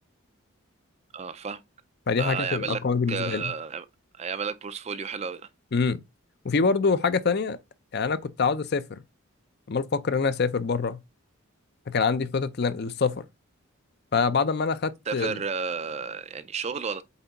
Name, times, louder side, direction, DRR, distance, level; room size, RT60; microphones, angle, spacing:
voice 1, 1.1-1.6 2.2-2.8 3.1-3.9 4.2-5.5 15.1-17.0, right 5 dB, 30° right, 0.4 m, -32 dB
voice 2, 2.1-3.5 5.7-6.0 6.4-7.6 7.9-9.0 9.7-11.0 11.9-13.2 14.1-15.4, left 5 dB, 45° left, 0.5 m, -25 dB
8.2 x 3.4 x 4.0 m
head